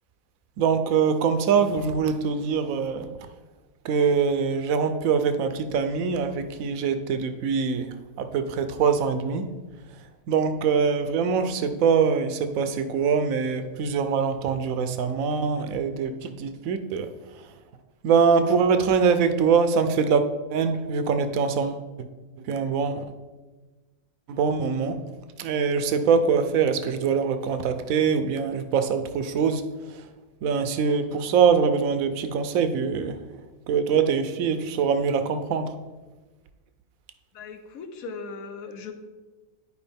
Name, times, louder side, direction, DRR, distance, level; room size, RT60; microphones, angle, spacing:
voice 1, 0.6-3.1 3.8-9.5 10.3-17.4 18.0-21.8 22.5-23.1 24.3-25.0 25.4-30.1 30.4-33.2 33.7-35.7, right 6 dB, 80° right, 9 dB, 1.1 m, -23 dB
voice 2, 37.3-38.9, left 4 dB, 80° left, 7 dB, 1.2 m, -38 dB
11.0 x 4.8 x 3.4 m, 1.2 s
omnidirectional pair, 1.4 m